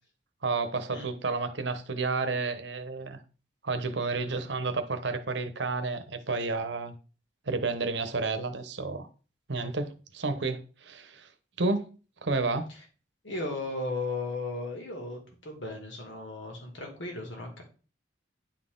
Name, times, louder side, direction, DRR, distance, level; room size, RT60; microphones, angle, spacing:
voice 1, 0.4-3.2 3.6-7.0 7.5-9.1 9.5-11.3 11.6-11.9 12.2-12.7, right 3 dB, 65° right, 0.9 m, -31 dB
voice 2, 13.2-17.6, left 2 dB, 75° left, 2.1 m, -36 dB
10.0 x 4.1 x 3.8 m
head